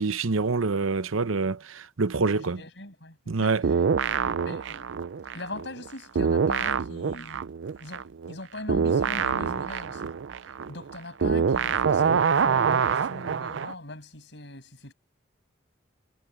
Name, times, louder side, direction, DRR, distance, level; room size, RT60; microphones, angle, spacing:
voice 1, 0.0-2.6 3.3-3.6, right 4 dB, 90° right, 0.8 m, -26 dB
voice 2, 2.3-3.8 4.4-4.9 5.3-7.5 7.7-10.1 10.7-14.9, left 2 dB, 60° left, 6.5 m, -41 dB
sound 1, 3.6-5.9 6.2-13.7, right 6 dB, 65° right, 0.4 m, -25 dB
head